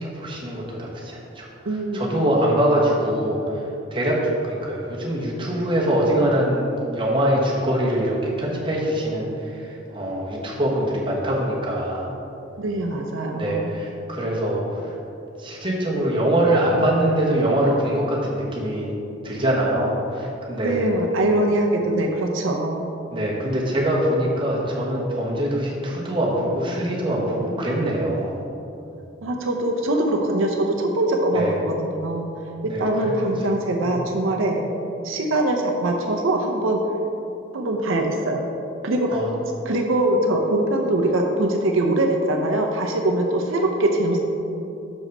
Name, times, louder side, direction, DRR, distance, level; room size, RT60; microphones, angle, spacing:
voice 1, 0.0-3.6 3.9-12.1 13.3-14.9 15.4-18.9 19.2-20.9 23.1-28.4 31.3-31.6 32.6-33.3 33.8-34.0 39.1-39.3, right 1 dB, 25° right, -4 dB, 1.2 m, -23 dB
voice 2, 1.7-2.0 12.6-13.7 20.6-22.9 29.2-32.3 32.6-34.6 35.0-36.8 37.5-38.4 38.8-39.2 39.7-44.2, right 1 dB, 75° right, 2 dB, 0.6 m, -22 dB
6.5 x 5.0 x 5.4 m, 2.8 s
head